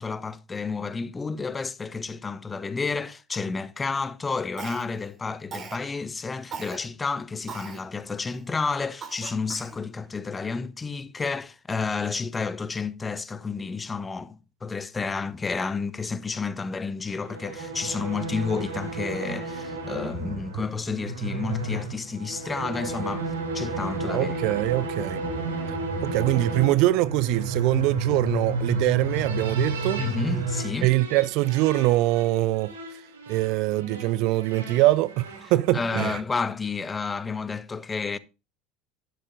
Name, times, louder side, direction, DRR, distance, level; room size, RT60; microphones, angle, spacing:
voice 1, 0.0-23.3 23.5-24.3 30.0-30.9 35.7-38.2, left 4 dB, 20° left, 0.9 m, -31 dB
Cough, 4.6-5.1 5.5-5.9 6.5-6.8 7.5-7.8 8.3-8.4 9.0-9.8, right 6 dB, 35° right, 3.2 m, -39 dB
sound 1, 17.1-36.1, right 2 dB, 75° right, 2.8 m, -32 dB
voice 2, 24.0-25.2 25.7-25.8 26.0-30.0 30.8-32.7 33.3-36.2, right 17 dB, 55° right, 0.5 m, -23 dB
12.0 x 11.5 x 2.5 m
figure-of-eight pair, 65°, 0 cm